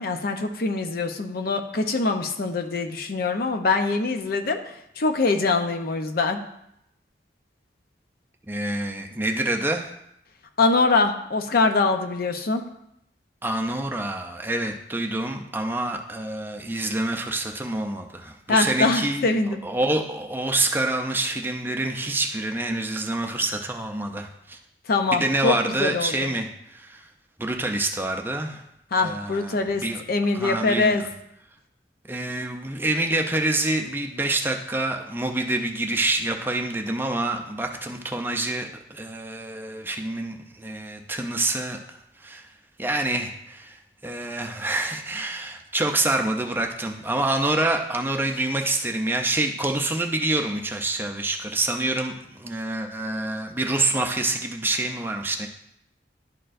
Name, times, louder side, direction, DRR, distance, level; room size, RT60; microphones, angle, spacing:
voice 1, 0.0-6.4 10.6-12.6 18.5-19.6 24.9-26.3 28.9-31.0, left 3 dB, 55° left, 6 dB, 0.6 m, -23 dB
voice 2, 8.5-10.0 13.4-19.3 19.6-24.6 25.1-27.1 27.4-28.6 29.0-30.0 30.3-30.9 32.1-42.5 42.8-55.5, right 2 dB, 10° right, 3 dB, 0.5 m, -27 dB
11.0 x 4.3 x 2.5 m, 0.78 s
head